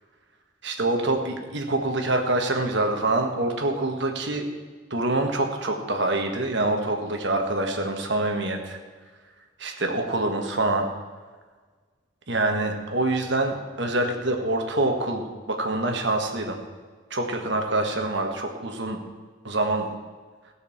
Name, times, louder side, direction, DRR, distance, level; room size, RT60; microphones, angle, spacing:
voice 1, 0.6-4.4 4.9-8.8 9.6-10.8 12.3-16.6 17.1-19.0 19.4-19.9, right 2 dB, 60° right, 3 dB, 1.6 m, -25 dB
16.0 x 6.6 x 7.2 m, 1.5 s
head